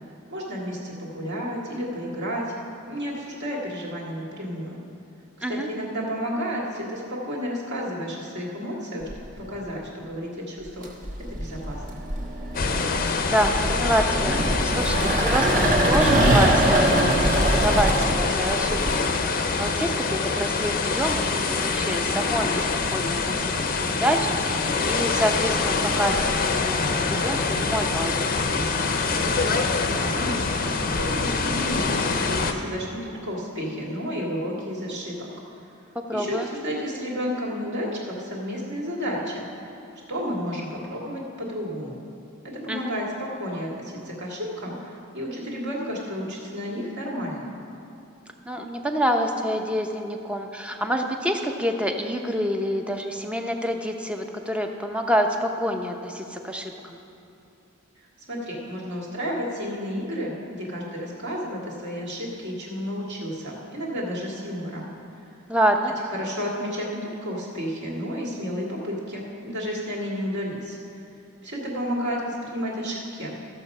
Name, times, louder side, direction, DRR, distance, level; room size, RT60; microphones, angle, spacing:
voice 1, 0.3-2.5 2.9-4.8 5.5-11.0 11.3-12.0 29.9-35.3 36.1-39.5 40.1-42.0 42.4-47.5 58.3-64.9 66.1-70.8 71.4-73.4, equal, 55° right, -3 dB, 2.2 m, -31 dB
sound 1, 9.1-9.6 10.7-19.0, right 1 dB, 40° right, 1.3 m, -23 dB
sound 2, 12.5-32.5, left 4 dB, 40° left, 0.6 m, -25 dB
voice 2, 13.3-19.1 19.6-28.8 36.1-36.5 42.7-42.9 48.5-57.0 65.5-65.9, equal, 5° right, 3 dB, 0.7 m, -27 dB
14.5 x 7.0 x 5.4 m, 2.7 s
head